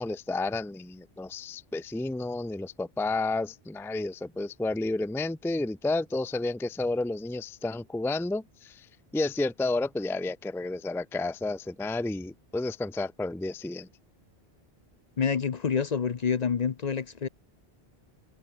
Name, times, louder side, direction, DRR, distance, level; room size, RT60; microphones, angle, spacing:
voice 1, 0.0-8.9 9.1-13.9, left 2 dB, 5° left, 0.4 m, -31 dB
voice 2, 15.2-17.3, left 6 dB, 45° left, 0.7 m, -27 dB
omnidirectional pair, 1.1 m